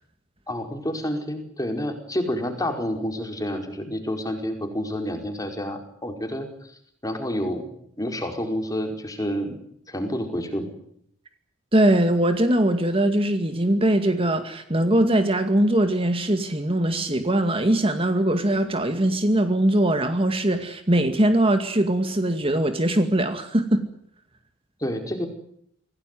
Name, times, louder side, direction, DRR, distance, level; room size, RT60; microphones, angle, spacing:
voice 1, 0.5-6.5 7.0-7.7 8.0-9.6 9.9-10.7 24.8-25.3, equal, 20° left, 4 dB, 5.0 m, -29 dB
voice 2, 11.7-23.8, right 1 dB, 30° right, 7 dB, 2.2 m, -21 dB
26.5 x 18.0 x 9.4 m, 0.70 s
head